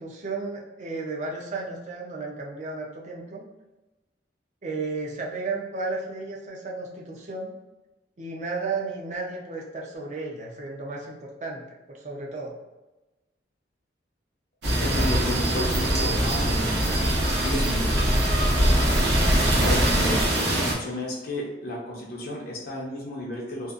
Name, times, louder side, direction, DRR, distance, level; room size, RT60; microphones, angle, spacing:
voice 1, 0.0-3.4 4.6-7.6 8.2-12.6, right 3 dB, 40° right, -2 dB, 0.5 m, -33 dB
sound 1, 14.6-20.7, right 1 dB, 75° right, 0.8 m, -22 dB
voice 2, 14.8-16.9 17.4-18.0 19.6-23.7, left 1 dB, 55° left, -2 dB, 0.5 m, -32 dB
2.6 x 2.3 x 2.4 m, 1.1 s
head